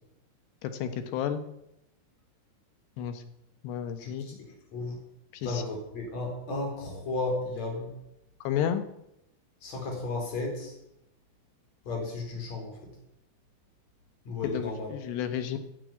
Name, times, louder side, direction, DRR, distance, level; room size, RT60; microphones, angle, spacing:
voice 1, 0.6-1.4 3.0-3.2 3.6-4.4 5.4-5.6 8.4-8.8 14.4-15.6, left 9 dB, 80° left, 9 dB, 3.2 m, -31 dB
voice 2, 5.4-7.9 9.6-10.7 11.9-12.8 14.3-14.9, left 2 dB, 40° left, 1 dB, 5.2 m, -33 dB
11.5 x 11.0 x 9.3 m, 0.83 s
omnidirectional pair, 5.0 m